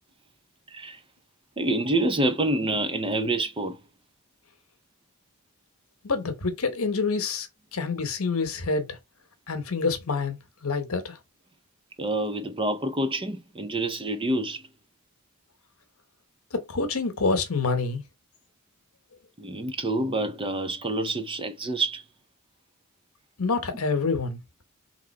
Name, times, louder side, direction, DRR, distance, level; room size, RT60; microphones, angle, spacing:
voice 1, 0.7-1.0 1.6-3.8 12.0-14.7 19.4-22.0, right 2 dB, 25° right, 0.5 m, -27 dB
voice 2, 6.0-9.0 9.5-11.2 16.5-18.0 23.4-24.4, left 4 dB, 75° left, 1.0 m, -27 dB
3.7 x 3.0 x 4.1 m
head